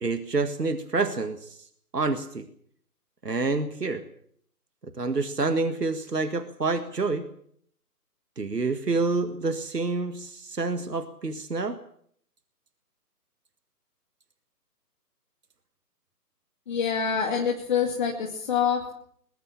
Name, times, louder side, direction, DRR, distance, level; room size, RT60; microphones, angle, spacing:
voice 1, 0.0-1.7 1.9-2.5 3.2-4.0 4.8-7.3 8.4-11.8, right 3 dB, 75° right, 10 dB, 1.9 m, -28 dB
voice 2, 16.7-18.9, left 7 dB, 30° left, 1 dB, 2.2 m, -26 dB
21.5 x 21.0 x 7.2 m, 0.65 s
figure-of-eight pair, 145°, 48 cm